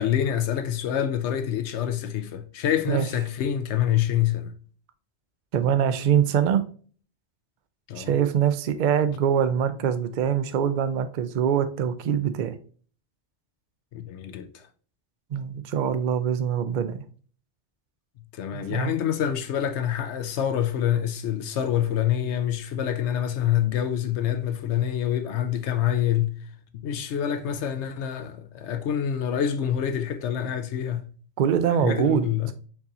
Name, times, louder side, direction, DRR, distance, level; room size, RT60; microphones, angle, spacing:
voice 1, 0.0-4.5 7.9-8.1 13.9-14.7 18.3-26.4 26.7-31.0 31.8-32.5, left 10 dB, 80° left, 0.9 m, -26 dB
voice 2, 5.5-6.6 8.0-12.6 15.3-17.0 18.5-19.0 31.4-32.3, right 8 dB, 55° right, 0.5 m, -24 dB
4.6 x 2.8 x 3.7 m
omnidirectional pair, 1.2 m